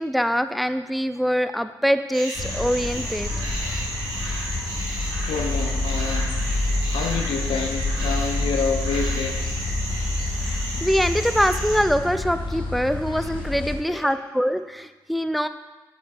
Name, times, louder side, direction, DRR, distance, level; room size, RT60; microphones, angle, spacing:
voice 1, 0.0-3.5 10.4-15.5, equal, ahead, 10 dB, 0.5 m, -24 dB
sound 1, 2.1-11.8, right 1 dB, 90° right, 2.2 m, -33 dB
sound 2, 2.3-13.7, left 2 dB, 65° left, 1.3 m, -28 dB
voice 2, 5.3-6.4 6.6-9.6 13.9-14.1, left 5 dB, 85° left, 3 dB, 0.8 m, -28 dB
9.1 x 8.5 x 2.6 m, 1.2 s
supercardioid pair, 45°, 9 cm